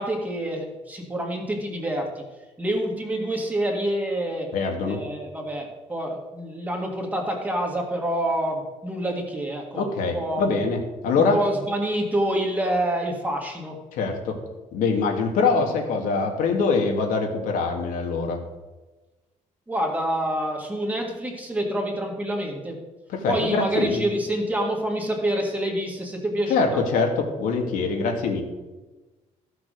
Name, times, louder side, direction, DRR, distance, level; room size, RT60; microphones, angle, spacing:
voice 1, 0.0-2.2 2.6-4.5 4.8-9.9 10.1-10.5 11.1-13.8 19.7-22.8 23.3-26.8, right 1 dB, 10° right, 1 dB, 1.7 m, -27 dB
voice 2, 4.5-5.0 9.7-11.4 13.9-14.4 14.7-18.4 23.1-24.1 26.5-28.4, left 4 dB, 90° left, 2 dB, 2.1 m, -24 dB
14.0 x 6.1 x 6.3 m, 1.2 s
cardioid pair, 170°, 14 cm